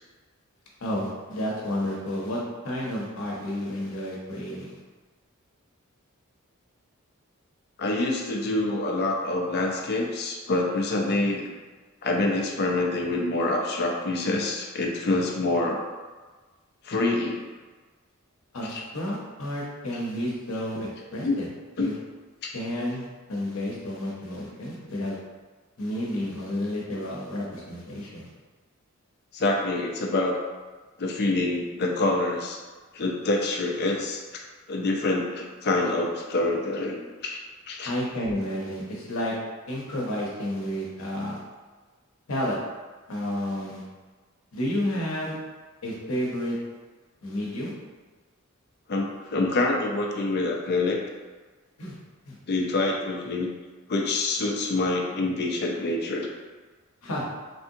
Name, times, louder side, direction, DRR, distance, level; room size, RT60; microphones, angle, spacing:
voice 1, 0.8-4.8 18.5-21.5 21.8-21.9 22.5-25.2 25.8-28.3 37.8-39.4 39.7-41.4 42.3-42.6 43.1-43.8 44.5-45.4 45.8-46.6 47.2-47.7 51.8-52.0 52.3-52.4 57.0-57.3, left 1 dB, 70° left, -3 dB, 0.8 m, -31 dB
voice 2, 7.8-11.5 12.0-15.8 16.8-17.4 18.6-18.8 21.2-21.4 21.8-21.9 22.4-22.5 29.3-30.3 31.0-32.6 32.9-34.4 34.7-37.4 37.7-37.9 48.9-51.0 52.5-53.5 53.9-56.3, left 2 dB, 50° left, 1 dB, 0.5 m, -26 dB
3.3 x 2.7 x 2.6 m, 1.3 s
head